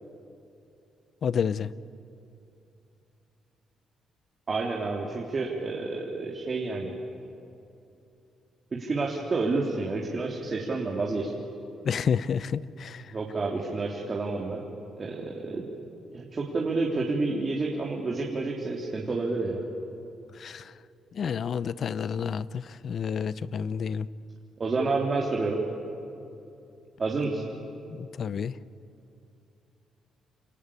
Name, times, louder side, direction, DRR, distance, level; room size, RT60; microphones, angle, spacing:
voice 1, 1.2-1.7 11.8-13.1 20.4-20.7 21.1-24.1 27.9-28.6, left 7 dB, 55° left, 17 dB, 0.7 m, -30 dB
voice 2, 4.5-6.9 8.7-11.3 13.1-14.6 15.0-15.6 16.1-19.6 24.6-25.6 27.0-27.4, right 3 dB, 35° right, -2 dB, 3.4 m, -29 dB
29.0 x 24.0 x 8.7 m, 2.8 s
cardioid pair, 90°, 0 cm